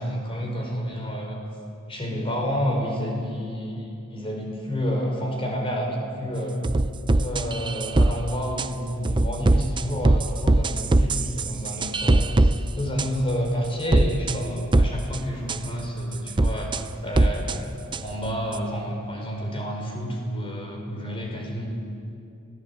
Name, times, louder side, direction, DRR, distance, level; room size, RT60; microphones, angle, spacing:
voice 1, 0.0-1.4 1.9-6.7 7.1-16.7 17.0-21.7, equal, 25° left, 1 dB, 4.4 m, -29 dB
sound 1, 6.6-8.1 8.6-8.7 9.0-12.5 13.0-13.1 13.9-14.4 14.7-15.2 15.5-15.6 16.3-16.8 17.1-17.6 17.9-18.0 18.5-18.6, right 2 dB, 20° right, 0.6 m, -20 dB
26.0 x 16.5 x 8.3 m, 2.6 s
head